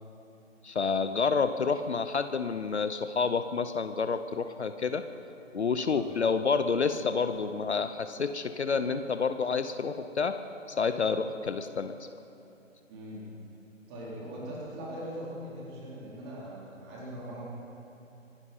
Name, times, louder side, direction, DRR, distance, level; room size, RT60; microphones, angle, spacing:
voice 1, 0.6-5.0 5.5-10.4 10.7-12.1, left 5 dB, 60° left, 10 dB, 0.8 m, -29 dB
voice 2, 12.9-13.3 13.9-17.4, equal, 20° right, -6 dB, 4.0 m, -41 dB
25.0 x 11.0 x 5.4 m, 2.9 s
figure-of-eight pair, 145°, 39 cm